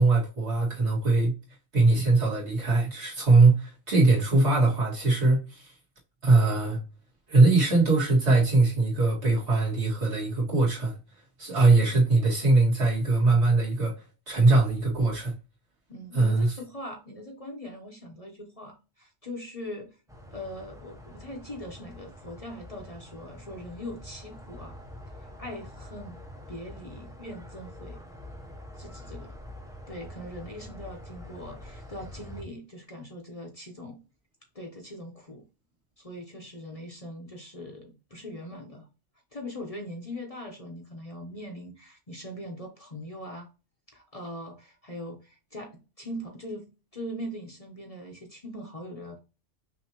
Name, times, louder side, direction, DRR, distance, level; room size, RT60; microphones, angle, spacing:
voice 1, 0.0-1.3 1.7-5.7 6.2-6.8 7.3-10.9 11.4-13.9 14.3-15.3 16.1-16.5, right 3 dB, 65° right, 2.4 m, -21 dB
voice 2, 15.9-20.0 20.3-24.8 25.2-26.2 26.5-28.0 28.7-29.3 29.9-34.0 34.5-35.4 36.0-38.9 39.3-43.5 43.9-49.2, left 1 dB, 35° left, 0.9 m, -41 dB
sound 1, 20.1-32.4, left 1 dB, 5° right, 0.6 m, -45 dB
5.9 x 2.8 x 2.9 m
omnidirectional pair, 1.2 m